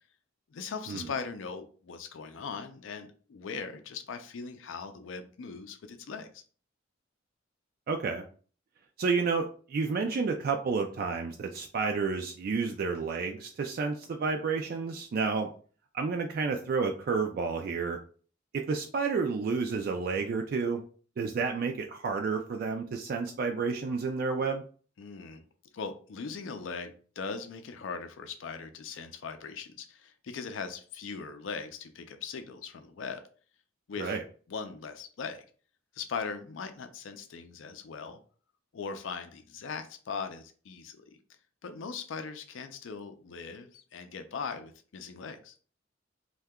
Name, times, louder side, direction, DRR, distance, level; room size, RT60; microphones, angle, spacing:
voice 1, 0.5-6.4 25.0-25.4 25.7-33.2 33.9-34.2 34.5-35.4 35.9-38.2 38.7-41.2 41.6-45.6, left 5 dB, 80° left, 8 dB, 0.4 m, -40 dB
voice 2, 7.9-8.2 9.0-15.5 15.9-18.0 18.5-20.8 21.2-24.6 34.0-34.2, right 4 dB, 50° right, 4 dB, 0.3 m, -30 dB
2.7 x 2.2 x 3.4 m, 0.41 s
head